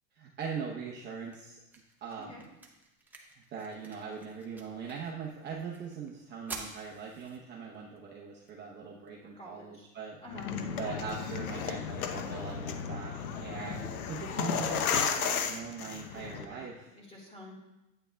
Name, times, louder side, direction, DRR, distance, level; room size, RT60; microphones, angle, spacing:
voice 1, 0.1-1.6 2.0-2.5 3.1-10.2 10.8-16.9, right 6 dB, 25° right, -3 dB, 0.8 m, -41 dB
sound 1, 0.7-12.7, right 3 dB, 5° right, 0.4 m, -52 dB
voice 2, 9.2-9.7 10.2-10.5 13.7-13.9 16.1-16.7 16.9-17.6, left 1 dB, 15° left, -2 dB, 2.0 m, -49 dB
sound 2, 10.3-16.5, left 7 dB, 90° left, 0.9 m, -34 dB
8.8 x 8.5 x 2.3 m, 0.95 s
supercardioid pair, 135°, 42 cm